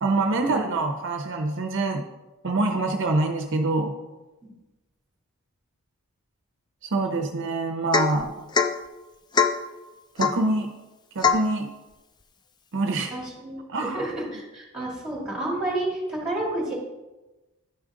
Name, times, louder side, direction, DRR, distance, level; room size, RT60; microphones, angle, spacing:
voice 1, 0.0-2.1 2.4-3.9 6.8-8.3 10.2-10.7 11.1-11.7 12.7-13.1 13.7-14.1, right 2 dB, 55° right, 4 dB, 0.6 m, -25 dB
Domestic sounds home sounds / Chink clink / Drip, 7.9-8.2 8.5-8.8 9.3-9.6 10.2-10.5 11.2-11.5, left 6 dB, 20° left, 0.3 m, -22 dB
voice 2, 13.1-16.7, right 1 dB, 5° right, -4 dB, 2.4 m, -30 dB
11.0 x 5.0 x 3.7 m, 1.1 s
head